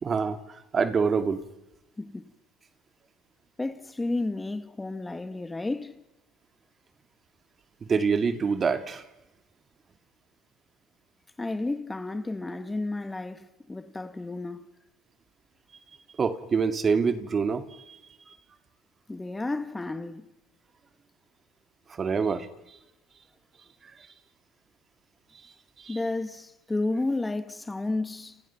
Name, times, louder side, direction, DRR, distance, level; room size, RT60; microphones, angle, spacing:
voice 1, 0.0-1.4 7.8-9.0 16.2-18.0 21.9-22.5 25.8-26.0, right 5 dB, 35° right, 2.3 m, -26 dB
voice 2, 2.0-2.3 3.6-6.0 11.4-14.7 19.1-20.3 25.9-28.4, left 2 dB, 15° left, 1.7 m, -32 dB
29.5 x 29.0 x 6.0 m
supercardioid pair, 90°, 0 cm